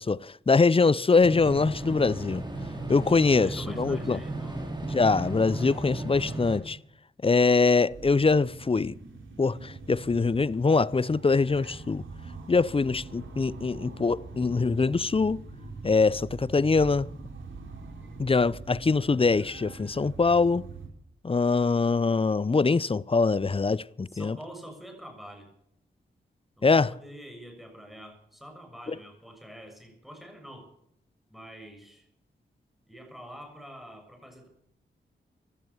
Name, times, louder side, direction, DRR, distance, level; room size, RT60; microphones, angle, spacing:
voice 1, 0.0-2.4 2.9-4.2 4.9-6.8 7.2-9.0 9.4-12.0 12.5-15.4 15.8-17.1 18.2-20.7 21.2-24.4 26.6-27.0, left 4 dB, 30° left, 0.6 m, -23 dB
sound 1, 1.2-6.6, right 2 dB, 25° right, 5.8 m, -35 dB
voice 2, 3.2-4.6 24.1-25.5 26.6-30.7 31.3-32.1 32.9-34.5, equal, ahead, 6.6 m, -46 dB
sound 2, 7.9-20.9, right 3 dB, 80° right, 4.0 m, -44 dB
16.5 x 12.0 x 7.2 m
cardioid pair, 50°, 20 cm